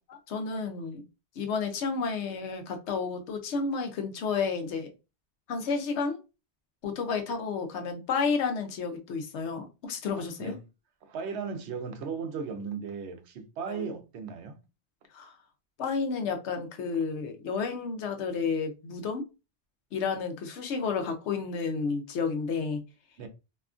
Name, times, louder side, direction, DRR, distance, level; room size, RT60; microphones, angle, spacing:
voice 1, 0.1-1.0 1.4-4.9 5.5-6.2 6.8-10.5 13.7-13.9 15.1-15.3 15.8-19.2 19.9-22.8, left 5 dB, 85° left, 0.9 m, -31 dB
voice 2, 11.0-14.6 23.2-23.3, right 5 dB, 80° right, 0.9 m, -36 dB
2.7 x 2.3 x 2.4 m
omnidirectional pair, 1.1 m